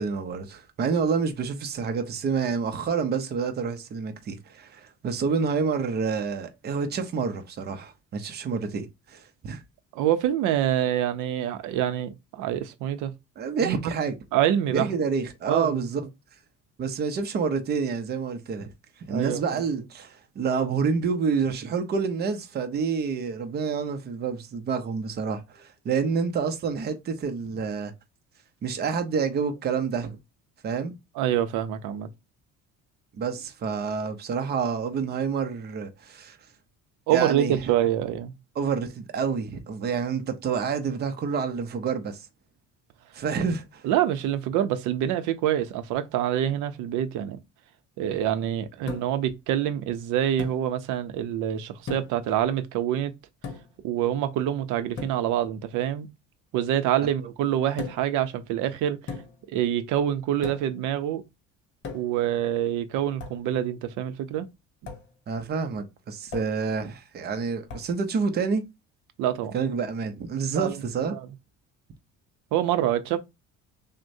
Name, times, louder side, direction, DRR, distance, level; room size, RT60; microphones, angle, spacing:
voice 1, 0.0-9.6 13.4-14.1 14.7-16.0 16.8-18.7 19.1-27.9 28.6-30.2 30.6-31.0 33.1-36.4 37.1-37.6 38.6-42.3 43.1-43.8 65.3-68.6 69.5-71.1, right 5 dB, 35° right, 0.6 m, -28 dB
voice 2, 9.9-13.1 13.6-13.9 14.3-14.9 15.5-15.8 19.1-19.6 31.2-32.1 37.1-38.3 43.8-47.4 48.0-53.1 53.8-56.1 56.5-59.0 59.5-61.2 61.9-64.5 69.2-69.6 70.6-70.8 71.1-71.2 72.5-73.2, right 11 dB, 80° right, 0.6 m, -26 dB
sound 1, 48.9-49.3 50.4-50.6 51.9-52.3 53.4-53.8 55.0-55.3 57.8-58.2 59.1-59.5 60.4-60.8 61.8-62.3 63.2-63.4 64.9-65.1 66.3-66.6 67.7-68.0, left 5 dB, 40° left, 1.0 m, -38 dB
6.1 x 2.2 x 2.7 m
cardioid pair, 145°, 30 cm